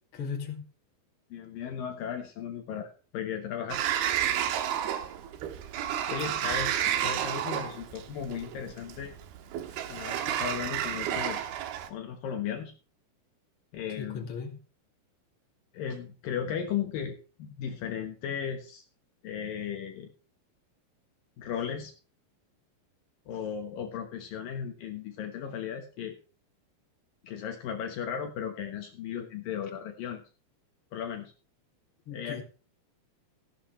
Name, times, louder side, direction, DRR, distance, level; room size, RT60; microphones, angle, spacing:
voice 1, 0.1-0.6 14.0-14.6 32.1-32.4, left 6 dB, 40° left, 2 dB, 2.8 m, -37 dB
voice 2, 1.3-3.8 6.1-9.2 9.9-11.5 11.9-12.7 13.7-14.2 15.7-18.8 19.2-20.1 21.4-21.9 23.3-26.2 27.2-30.2 30.9-31.3 32.1-32.4, left 8 dB, 70° left, 4 dB, 2.8 m, -36 dB
Sliding door, 3.7-11.9, right 10 dB, 85° right, 3.1 m, -31 dB
15.0 x 11.5 x 3.2 m, 0.35 s
omnidirectional pair, 4.4 m